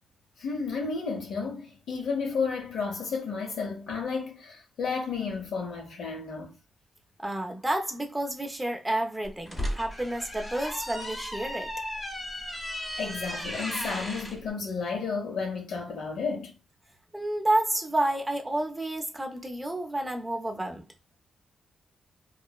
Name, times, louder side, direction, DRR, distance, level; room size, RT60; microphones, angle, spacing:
voice 1, 0.4-6.6 13.0-16.5, left 5 dB, 80° left, 0.8 m, -32 dB
voice 2, 7.2-11.7 17.1-20.9, right 1 dB, 10° right, 0.5 m, -30 dB
sound 1, 9.2-14.4, equal, 15° left, 0.8 m, -35 dB
3.0 x 2.0 x 2.3 m
cardioid pair, 120°, 0 cm